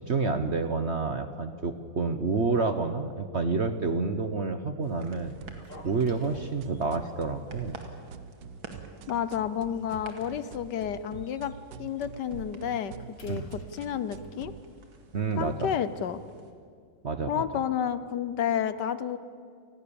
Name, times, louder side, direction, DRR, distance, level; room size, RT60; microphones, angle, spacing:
voice 1, 0.1-7.8 13.3-13.4 15.1-15.7 17.0-17.4, right 4 dB, 45° right, 9 dB, 1.0 m, -29 dB
sound 1, 4.8-16.5, right 4 dB, 90° right, 2.9 m, -52 dB
sound 2, 5.2-14.6, right 8 dB, 70° right, 1.4 m, -46 dB
sound 3, 5.6-7.1 7.5-7.7 8.0-8.1 8.7-9.2 9.5-11.6 11.9-12.1 12.5-14.5, left 3 dB, 40° left, 2.4 m, -53 dB
voice 2, 9.1-11.5 11.8-12.9 13.2-14.5 15.4-16.2 17.3-19.2, left 9 dB, 65° left, 14 dB, 1.3 m, -30 dB
29.5 x 20.0 x 7.1 m, 2.3 s
omnidirectional pair, 2.1 m